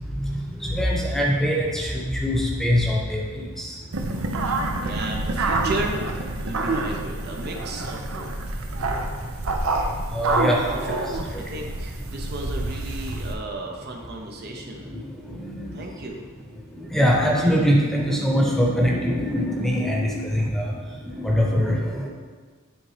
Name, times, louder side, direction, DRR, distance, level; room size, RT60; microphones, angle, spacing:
voice 1, 0.1-3.8 6.6-6.7 10.1-10.9 11.2-11.4 14.9-15.8 16.7-22.1, equal, ahead, -2 dB, 0.9 m, -23 dB
sound 1, 3.9-13.3, right 2 dB, 85° right, 0.6 m, -27 dB
voice 2, 4.8-6.0 6.4-8.3 10.7-14.9 15.3-15.4 15.7-16.5, right 2 dB, 50° right, 1 dB, 0.7 m, -34 dB
9.6 x 3.6 x 3.3 m, 1.5 s
head